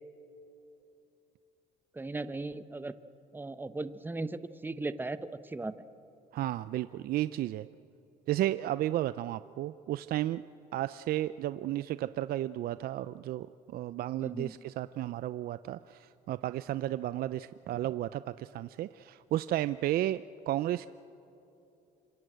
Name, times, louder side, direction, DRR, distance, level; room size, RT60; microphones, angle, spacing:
voice 1, 1.9-2.9 3.3-5.2 5.4-5.7 14.2-14.6, right 2 dB, 10° right, 12 dB, 0.9 m, -37 dB
voice 2, 6.3-7.7 8.3-10.4 10.7-20.9, right 13 dB, 65° right, 14 dB, 0.5 m, -33 dB
26.5 x 24.5 x 8.0 m, 2.9 s
cardioid pair, 110°, 17 cm